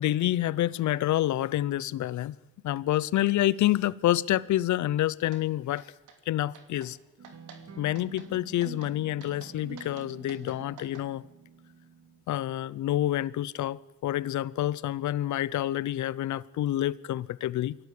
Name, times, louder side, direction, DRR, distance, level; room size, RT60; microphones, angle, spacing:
voice 1, 0.0-2.4 2.6-5.9 6.3-7.0 7.8-11.2 12.3-17.8, left 14 dB, 70° left, 0.8 m, -28 dB
sound 1, 5.3-5.4 5.8-6.2 6.5-6.9 7.2-7.6 7.9-8.3 8.6-8.9 9.2-11.1, right 6 dB, 80° right, 2.8 m, -51 dB
sound 2, 7.2-12.2, right 4 dB, 60° right, 2.9 m, -47 dB
23.0 x 17.0 x 8.5 m
cardioid pair, 90°, 30 cm